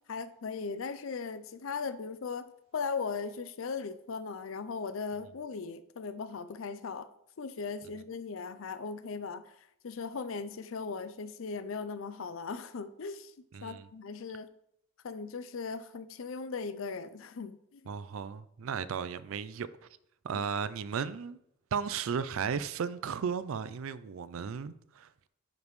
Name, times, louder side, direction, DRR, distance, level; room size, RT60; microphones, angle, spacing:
voice 1, 0.1-7.1 7.4-9.6 9.8-13.3 13.6-14.5 15.0-17.8 20.3-20.4, left 5 dB, 75° left, 0.5 m, -38 dB
voice 2, 13.5-13.9 17.9-19.7 20.2-21.4 21.7-25.3, right 6 dB, 80° right, 0.4 m, -35 dB
10.5 x 5.1 x 3.2 m
head